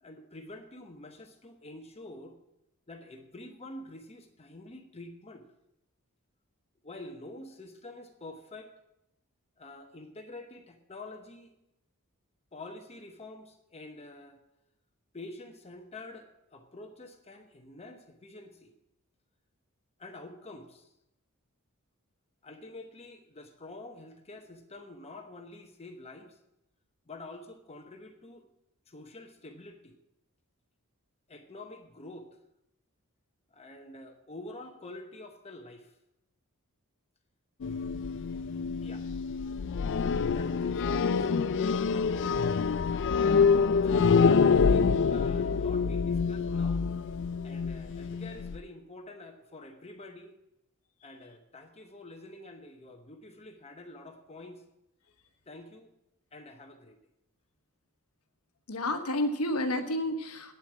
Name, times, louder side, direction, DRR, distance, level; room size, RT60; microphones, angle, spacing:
voice 1, 0.0-2.4 2.9-5.4 6.8-8.7 9.6-11.5 12.5-14.4 15.1-18.7 20.0-20.9 22.4-26.4 27.1-28.5 28.9-30.0 31.3-32.3 33.5-36.0 38.8-39.1 40.3-43.5 43.7-46.9 47.4-50.4 51.0-54.6 55.5-55.9 56.3-57.0, left 2 dB, 30° left, 5 dB, 1.0 m, -47 dB
sound 1, 37.6-48.6, left 5 dB, 55° left, 0.4 m, -26 dB
voice 2, 44.5-44.8 58.7-60.6, left 1 dB, 80° left, 7 dB, 1.2 m, -31 dB
9.1 x 8.3 x 7.4 m, 0.85 s
head